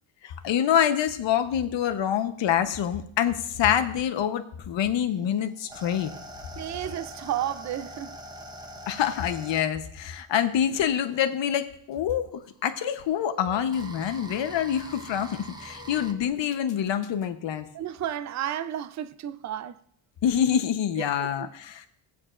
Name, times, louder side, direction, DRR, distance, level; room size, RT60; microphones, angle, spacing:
voice 1, 0.2-6.1 8.9-17.7 20.2-21.9, left 9 dB, 65° left, 1.0 m, -26 dB
sound 1, 5.1-11.3 12.3-16.1, equal, 10° right, 1.0 m, -43 dB
voice 2, 6.6-8.2 17.7-19.8 21.0-21.1 21.4-21.5, right 11 dB, 35° right, 0.5 m, -32 dB
16.5 x 8.5 x 2.5 m
cardioid pair, 120°, 48 cm